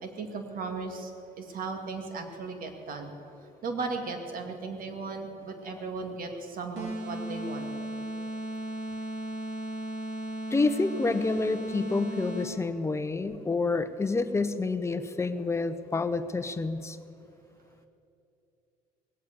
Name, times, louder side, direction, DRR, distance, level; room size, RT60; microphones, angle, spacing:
voice 1, 0.0-1.1 1.4-3.1 3.6-7.7, right 4 dB, 55° right, 5 dB, 2.1 m, -36 dB
sound 1, 6.8-12.7, right 1 dB, 80° right, 2.5 m, -36 dB
voice 2, 10.5-17.0, left 3 dB, 15° left, 10 dB, 0.8 m, -28 dB
19.0 x 8.3 x 8.4 m, 2.7 s
cardioid pair, 110°, 17 cm